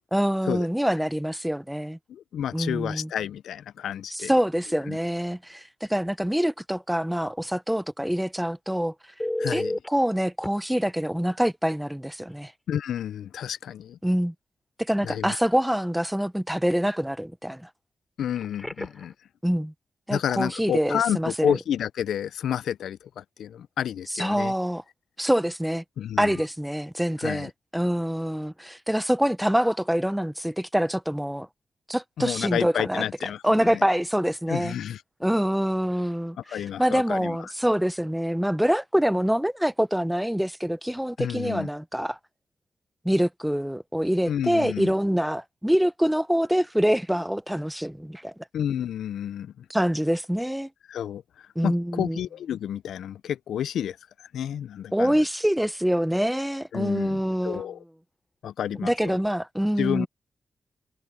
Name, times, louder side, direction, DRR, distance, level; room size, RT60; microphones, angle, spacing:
voice 1, 0.1-2.0 2.5-3.1 4.1-8.9 9.5-12.5 14.0-14.3 14.8-17.7 19.4-19.7 20.1-21.6 24.1-24.8 25.2-25.8 26.2-31.5 31.9-33.0 33.4-34.7 35.2-42.2 43.0-48.3 49.7-50.7 51.6-52.2 54.9-57.6 58.8-60.1, equal, 5° right, 0.7 m, -25 dB
voice 2, 2.1-4.3 4.9-5.0 9.4-9.8 12.7-14.0 15.0-15.4 18.2-19.1 20.1-24.5 26.0-26.3 27.2-27.5 32.2-33.8 34.5-35.0 36.5-37.5 41.2-41.7 44.3-44.9 48.5-49.7 50.9-55.2 56.7-57.8 58.4-59.2 59.8-60.1, left 9 dB, 85° left, 0.4 m, -30 dB
Telephone, 9.2-9.9 10.4-10.5 12.3-12.4 12.8-13.0 18.3-19.1 26.3-26.5, left 1 dB, 15° left, 6.1 m, -32 dB
supercardioid pair, 45°, 0 cm